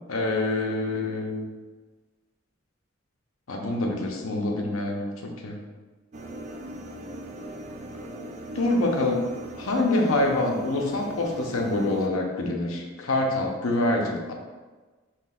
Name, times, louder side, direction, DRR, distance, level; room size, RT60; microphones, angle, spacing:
voice 1, 0.1-1.5 3.5-5.6 8.5-9.2 9.6-14.3, left 2 dB, 85° left, 1 dB, 0.7 m, -26 dB
sound 1, 6.1-12.1, equal, 35° right, 0.3 m, -39 dB
5.8 x 3.0 x 2.4 m, 1.3 s
head